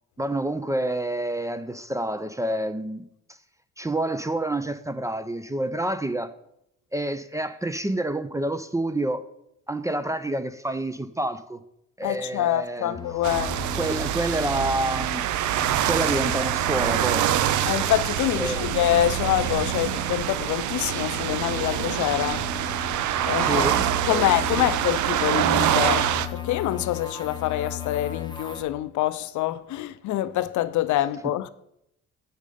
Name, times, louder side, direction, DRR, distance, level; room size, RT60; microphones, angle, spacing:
voice 1, 0.2-3.1 3.8-6.3 6.9-9.2 9.7-11.6 12.0-13.0 13.7-15.2 15.9-17.3 18.4-18.7 23.4-24.3 24.6-24.7 31.2-31.3, right 1 dB, 10° right, 0.4 m, -28 dB
voice 2, 12.0-13.6 17.6-22.4 23.2-23.7 24.0-31.5, left 13 dB, 75° left, 0.5 m, -26 dB
sound 1, 12.9-15.2 15.5-19.0 19.3-28.6, left 7 dB, 15° left, 0.9 m, -38 dB
sound 2, 13.2-26.3, right 11 dB, 75° right, 0.5 m, -25 dB
6.5 x 5.3 x 4.9 m
cardioid pair, 90°, 30 cm